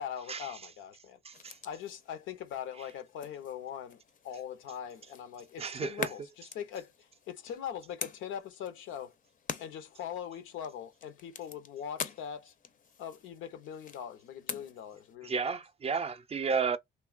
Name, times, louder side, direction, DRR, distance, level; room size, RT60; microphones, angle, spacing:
voice 1, 0.0-1.2 1.6-4.0 4.2-9.1 9.6-12.5 13.0-15.4, left 9 dB, 85° left, 0.6 m, -41 dB
sound 1, 1.3-15.2, left 7 dB, 45° left, 0.5 m, -46 dB
voice 2, 5.6-6.1 15.2-16.8, right 5 dB, 30° right, 0.4 m, -32 dB
2.9 x 2.2 x 2.3 m
cardioid pair, 90°, 20 cm